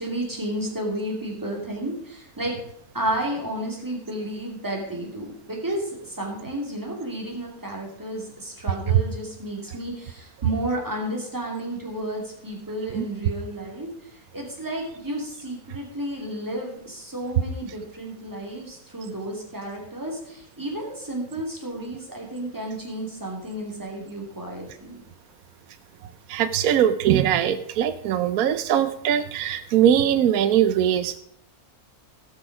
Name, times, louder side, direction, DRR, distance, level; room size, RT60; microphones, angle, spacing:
voice 1, 0.0-2.6 2.9-25.0, right 1 dB, 10° right, -1 dB, 2.8 m, -32 dB
voice 2, 26.3-31.2, right 10 dB, 75° right, 11 dB, 1.1 m, -21 dB
17.5 x 6.1 x 4.8 m, 0.72 s
omnidirectional pair, 1.6 m